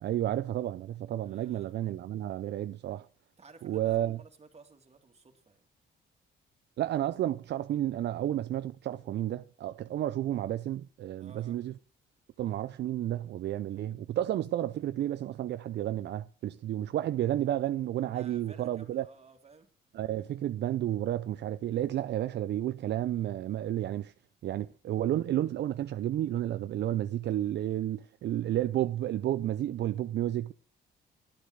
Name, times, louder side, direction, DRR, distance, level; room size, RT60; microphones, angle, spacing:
voice 1, 0.0-3.1 3.6-4.2 6.8-11.7 12.4-19.1 19.9-24.1 24.4-30.5, right 12 dB, 60° right, 0.5 m, -31 dB
voice 2, 1.2-1.8 3.4-5.7 11.2-11.6 18.1-19.7, right 4 dB, 30° right, 2.3 m, -55 dB
12.0 x 8.2 x 6.3 m
cardioid pair, 90°, 20 cm